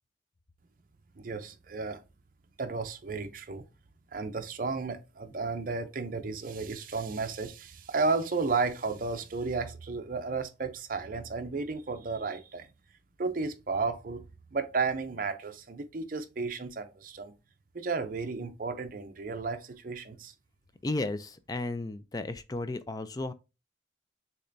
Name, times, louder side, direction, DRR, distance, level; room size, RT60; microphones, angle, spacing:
voice 1, 1.2-2.0 2.6-3.6 4.1-12.7 13.2-17.3 17.7-20.3, right 4 dB, 45° right, 0.5 m, -33 dB
voice 2, 20.8-23.3, left 2 dB, 20° left, 0.3 m, -34 dB
6.6 x 2.9 x 2.6 m
head